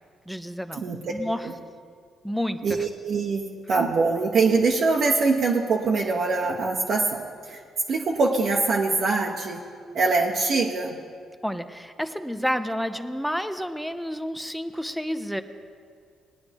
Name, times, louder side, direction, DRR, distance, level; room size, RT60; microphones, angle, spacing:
voice 1, 0.3-1.5 2.2-2.9 11.4-15.4, equal, ahead, 9 dB, 0.6 m, -30 dB
voice 2, 2.6-7.6 7.9-9.6 9.9-11.0, right 3 dB, 60° right, -1 dB, 1.0 m, -23 dB
20.0 x 9.6 x 3.5 m, 2.2 s
cardioid pair, 90°, 0 cm